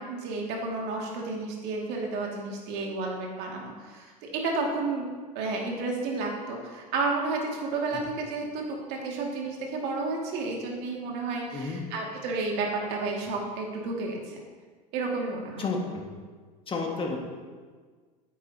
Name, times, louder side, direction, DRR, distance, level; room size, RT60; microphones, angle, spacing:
voice 1, 0.0-5.0 5.3-14.4 14.9-15.6, right 3 dB, 60° right, 0 dB, 2.2 m, -31 dB
voice 2, 15.6-16.0 16.7-17.2, left 3 dB, 25° left, 1 dB, 1.7 m, -31 dB
9.4 x 8.3 x 2.8 m, 1.5 s
hypercardioid pair, 90°, 20 cm